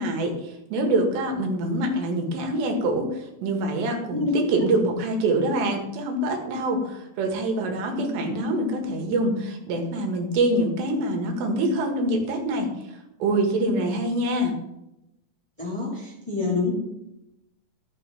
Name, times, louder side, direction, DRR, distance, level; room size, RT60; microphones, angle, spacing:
voice 1, 0.0-12.7 13.2-14.6, right 1 dB, 90° right, 3 dB, 4.0 m, -25 dB
voice 2, 4.1-4.4 7.9-8.1 13.7-13.9 15.6-16.7, left 4 dB, 10° left, -4 dB, 1.8 m, -27 dB
14.5 x 6.2 x 6.1 m, 0.89 s
omnidirectional pair, 4.8 m